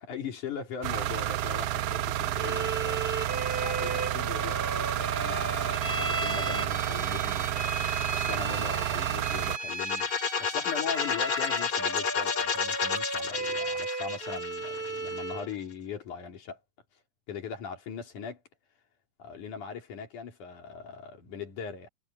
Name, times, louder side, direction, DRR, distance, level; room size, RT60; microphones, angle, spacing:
voice 1, 0.0-16.6 17.3-18.4 19.2-21.9, left 6 dB, 80° left, 4.6 m, -40 dB
sound 1, 0.8-9.6, right 13 dB, 75° right, 1.5 m, -30 dB
Bowed string instrument, 2.4-15.5, right 2 dB, 15° right, 3.7 m, -36 dB
sound 2, 9.6-15.4, left 6 dB, 45° left, 2.2 m, -31 dB
omnidirectional pair, 3.5 m